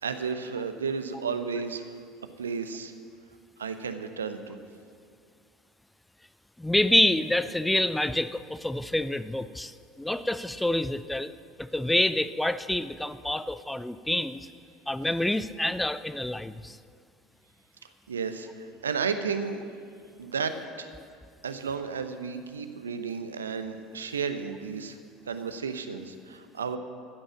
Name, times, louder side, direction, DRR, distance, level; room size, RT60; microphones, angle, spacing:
voice 1, 0.0-1.9 2.4-2.9 3.6-4.6 18.1-19.6 20.2-20.9 21.4-25.0 25.3-26.8, right 5 dB, 80° right, 9 dB, 0.8 m, -33 dB
voice 2, 6.6-11.3 11.6-14.5 14.9-16.8, left 1 dB, 5° left, 14 dB, 0.5 m, -27 dB
14.5 x 8.8 x 7.4 m, 2.2 s
figure-of-eight pair, 65°, 0 cm